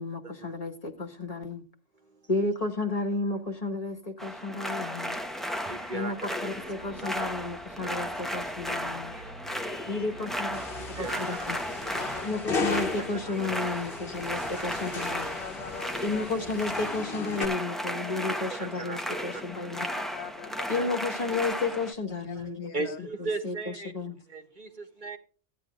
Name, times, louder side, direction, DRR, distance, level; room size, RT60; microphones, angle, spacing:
voice 1, 0.0-1.6 2.3-5.2 5.9-6.1 6.4-9.1 9.8-10.6 11.0-11.6 12.2-15.4 16.0-19.9 20.7-22.7 23.2-23.5 23.8-24.2, left 3 dB, 30° left, 4 dB, 1.6 m, -32 dB
sound 1, 4.2-21.9, equal, ahead, 0.9 m, -35 dB
Bus, 5.1-17.0, right 1 dB, 75° right, 2.3 m, -50 dB
voice 2, 5.6-6.3 7.0-7.3 7.8-8.0 10.8-11.5 13.3-13.4 14.6-14.9 18.6-19.4 20.6-20.9 22.3-22.5 22.7-23.9 24.3-25.2, right 3 dB, 40° right, 4 dB, 1.7 m, -37 dB
sound 2, 10.5-17.4, left 4 dB, 50° left, 1.5 m, -36 dB
voice 3, 11.5-12.8 13.8-14.3 15.1-16.3 17.9-18.4 19.3-19.4 19.7-20.6 21.3-21.4 22.2-23.0, left 6 dB, 70° left, 10 dB, 1.0 m, -44 dB
16.0 x 10.0 x 2.5 m, 0.39 s
omnidirectional pair, 1.2 m